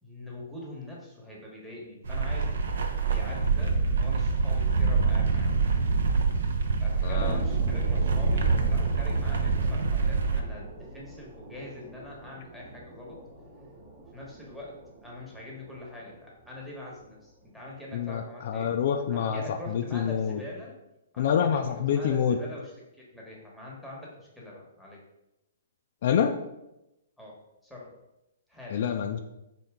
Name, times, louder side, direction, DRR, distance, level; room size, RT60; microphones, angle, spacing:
voice 1, 0.0-5.7 6.8-13.2 14.1-18.7 19.1-20.7 21.1-22.7 23.0-25.0 27.2-27.4 27.6-27.9 28.5-28.9, left 1 dB, ahead, -4 dB, 1.0 m, -43 dB
sound 1, 2.0-10.4, right 4 dB, 75° right, 0.6 m, -25 dB
voice 2, 7.0-7.4 17.9-20.4 21.2-22.4 26.0-26.4 28.7-29.2, left 8 dB, 55° left, 6 dB, 0.3 m, -27 dB
sound 2, 7.1-18.1 18.6-18.7, right 1 dB, 30° right, 0.9 m, -43 dB
4.2 x 2.8 x 3.5 m, 0.91 s
hypercardioid pair, 145°, 0 cm